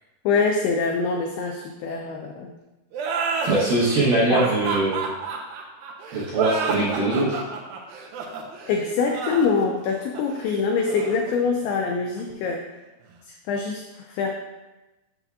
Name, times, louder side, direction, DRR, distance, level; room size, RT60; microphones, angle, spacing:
voice 1, 0.3-2.5 4.3-4.5 8.7-12.7 13.5-14.3, left 4 dB, 85° left, 2 dB, 2.2 m, -24 dB
sound 1, 2.9-12.2, right 4 dB, 90° right, 2.0 m, -30 dB
voice 2, 3.4-5.0 6.1-7.4, right 2 dB, 70° right, -7 dB, 2.2 m, -21 dB
6.9 x 6.9 x 2.4 m, 1.1 s
omnidirectional pair, 5.1 m